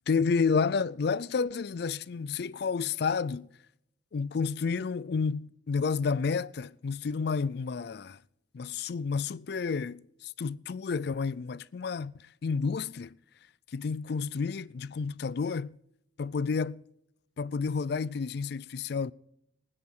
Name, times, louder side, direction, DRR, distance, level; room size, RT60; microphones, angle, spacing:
voice 1, 0.1-3.5 4.1-8.2 8.5-13.2 13.7-15.8 16.2-16.8 17.4-19.1, left 5 dB, 55° left, 0.4 m, -30 dB
23.5 x 9.8 x 3.7 m
head